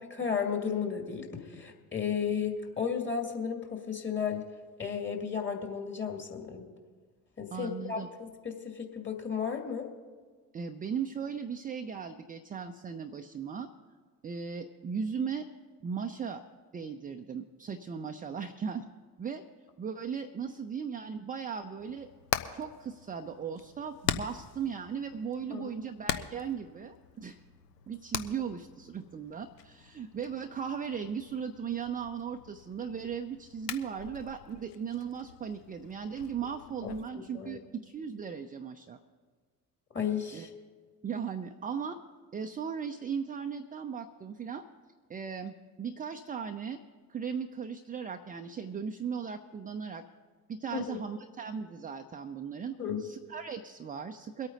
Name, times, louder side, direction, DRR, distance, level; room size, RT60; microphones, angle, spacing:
voice 1, 0.2-4.5 4.8-6.7 7.4-9.9 25.5-25.7 36.8-36.9 37.3-37.6 39.9-40.5 50.7-51.0 52.8-53.1, left 7 dB, 25° left, 3 dB, 2.3 m, -34 dB
voice 2, 7.5-8.1 10.5-13.7 14.2-15.5 15.8-16.4 16.7-18.9 19.2-19.4 19.8-22.1 22.5-27.4 27.9-39.0 40.3-40.5 41.0-42.0 42.3-44.6 45.1-46.8 47.1-50.1 50.5-54.5, right 6 dB, 15° right, 6 dB, 0.6 m, -37 dB
Hammer, 21.8-37.0, left 10 dB, 70° left, 0.8 m, -42 dB
23.0 x 8.8 x 3.9 m, 1.5 s
figure-of-eight pair, 55°, 49 cm